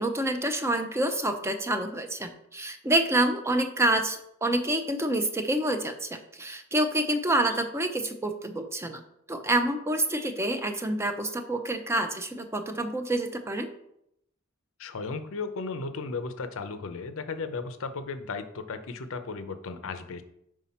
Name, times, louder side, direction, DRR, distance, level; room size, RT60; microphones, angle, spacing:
voice 1, 0.0-9.0 9.3-13.7, right 1 dB, 10° right, 6 dB, 0.5 m, -27 dB
voice 2, 14.8-20.2, left 4 dB, 65° left, 10 dB, 0.6 m, -35 dB
5.5 x 4.9 x 4.2 m, 0.76 s
head